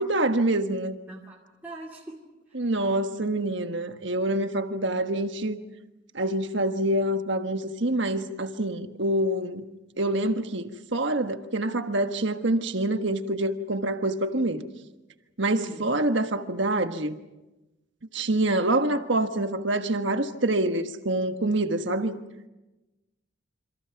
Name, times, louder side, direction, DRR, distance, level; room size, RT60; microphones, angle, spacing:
voice 1, 0.0-1.0 2.5-5.6 6.1-9.6 10.0-14.7 15.4-17.2 18.1-22.2, right 1 dB, 55° right, 1.5 m, -26 dB
voice 2, 1.1-2.7 3.1-3.2 15.5-15.9, right 1 dB, 10° right, 2.4 m, -44 dB
28.0 x 26.5 x 5.9 m
head